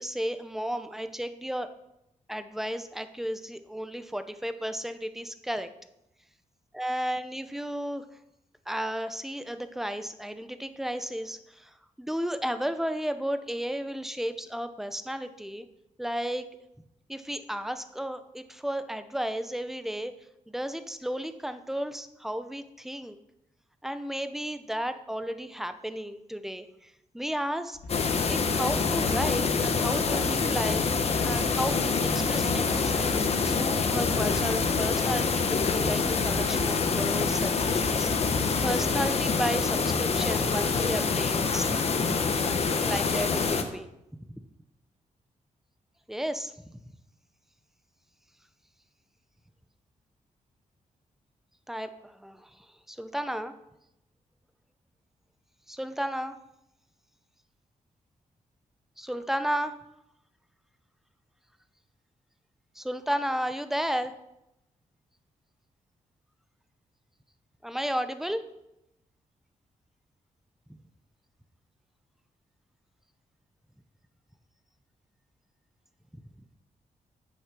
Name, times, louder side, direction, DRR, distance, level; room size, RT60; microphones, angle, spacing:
voice 1, 0.0-1.7 2.3-5.7 6.7-8.1 8.7-15.7 16.0-16.5 17.1-20.1 20.5-23.2 23.8-27.8 28.3-41.7 42.8-43.9 44.1-44.2 46.1-46.8 51.7-53.5 55.7-56.4 59.0-59.7 62.7-64.1 67.6-68.4 76.1-76.2, equal, 5° right, 10 dB, 0.7 m, -33 dB
sound 1, 27.7-38.9, left 2 dB, 80° left, 2.3 m, -40 dB
sound 2, 27.9-43.6, left 4 dB, 50° left, 1.0 m, -26 dB
8.8 x 6.8 x 6.0 m, 0.86 s
cardioid pair, 110°, 14 cm